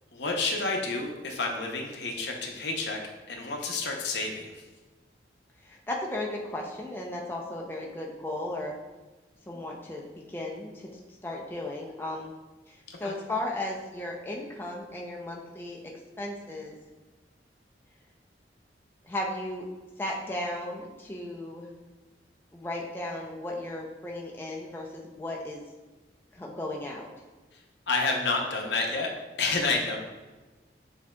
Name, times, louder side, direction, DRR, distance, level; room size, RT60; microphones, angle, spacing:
voice 1, 0.1-3.0 3.3-4.6 12.9-13.1 27.9-29.1 29.4-30.0, left 3 dB, 75° left, 1 dB, 0.7 m, -29 dB
voice 2, 5.6-8.7 9.5-10.9 11.2-12.3 12.7-15.8 16.2-16.8 19.0-19.7 20.0-21.7 22.5-25.6 26.3-27.1, left 1 dB, 10° left, -1 dB, 0.3 m, -35 dB
7.2 x 2.7 x 2.2 m, 1.2 s
head